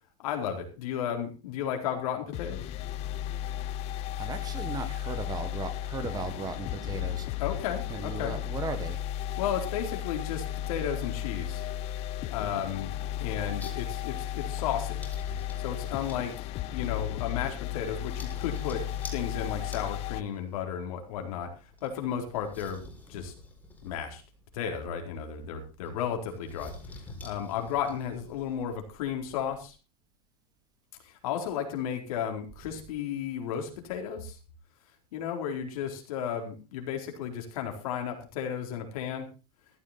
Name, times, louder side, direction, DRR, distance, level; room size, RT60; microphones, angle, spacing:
voice 1, 0.2-2.6 7.4-8.4 9.4-11.6 12.3-12.9 13.2-15.0 15.6-18.9 19.1-21.5 21.8-22.8 23.1-23.3 23.8-24.2 24.5-26.7 27.2-29.7 31.0-34.4 35.1-39.3, left 8 dB, 65° left, 3 dB, 4.3 m, -33 dB
sound 1, 2.3-20.2, left 12 dB, 35° left, 0.6 m, -34 dB
voice 2, 4.2-7.3 7.9-9.0, right 5 dB, 20° right, 10 dB, 1.6 m, -37 dB
sound 2, 13.4-29.7, left 2 dB, 10° left, 4.3 m, -50 dB
14.5 x 11.5 x 4.2 m, 0.32 s
supercardioid pair, 150°, 19 cm